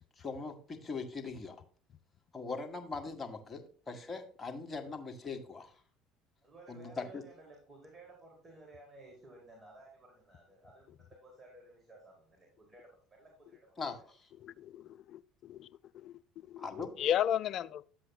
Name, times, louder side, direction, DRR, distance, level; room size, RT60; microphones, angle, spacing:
voice 1, 0.2-1.6 2.3-3.6 3.9-5.8 6.7-7.2 13.8-14.3 16.6-16.9, left 4 dB, 25° left, 2.0 m, -41 dB
voice 2, 6.4-12.9 13.2-13.8, right 2 dB, 30° right, 4.9 m, -56 dB
voice 3, 14.4-16.1 16.4-16.7 17.0-17.8, left 10 dB, 55° left, 0.4 m, -34 dB
11.5 x 7.7 x 2.4 m
hypercardioid pair, 60°, 0 cm